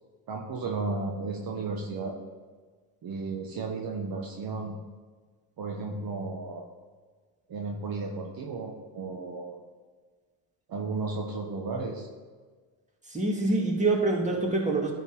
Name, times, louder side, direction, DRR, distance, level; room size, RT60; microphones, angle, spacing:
voice 1, 0.3-2.1 3.0-4.8 5.6-6.6 7.5-9.6 10.7-12.1, right 3 dB, 45° right, 0 dB, 1.4 m, -34 dB
voice 2, 13.1-14.9, right 2 dB, 15° right, -1 dB, 2.3 m, -25 dB
11.0 x 4.2 x 5.4 m, 1.5 s
supercardioid pair, 70°, 48 cm